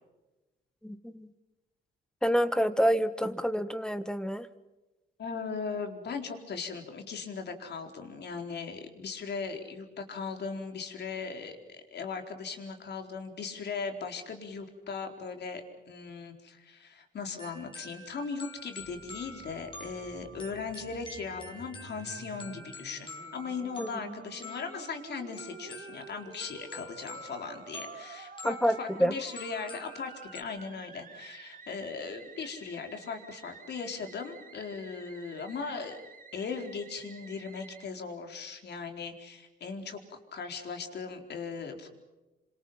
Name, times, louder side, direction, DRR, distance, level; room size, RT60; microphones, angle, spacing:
voice 1, 0.8-1.3 2.2-4.5 23.8-24.1 28.4-29.1, equal, 5° left, 12 dB, 1.6 m, -28 dB
voice 2, 5.2-36.0 36.3-41.9, left 5 dB, 60° left, 4 dB, 4.5 m, -38 dB
sound 1, 17.4-30.4, left 1 dB, 25° left, 5.6 m, -47 dB
Musical instrument, 18.8-37.9, right 5 dB, 45° right, 3.4 m, -51 dB
28.5 x 26.5 x 5.9 m, 1.1 s
cardioid pair, 90°, 20 cm